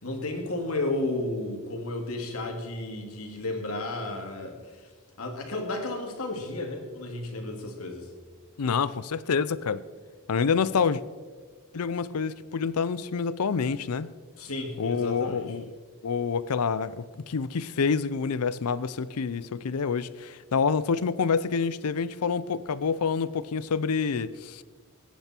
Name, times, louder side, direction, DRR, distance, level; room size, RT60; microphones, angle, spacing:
voice 1, 0.0-4.9 5.2-8.1 14.4-15.5, left 2 dB, 70° left, 2.5 m, -33 dB
voice 2, 8.6-9.8 10.3-11.0 11.7-14.1 14.8-15.7 16.0-24.6, left 5 dB, 85° left, 0.5 m, -27 dB
21.0 x 10.5 x 4.4 m
head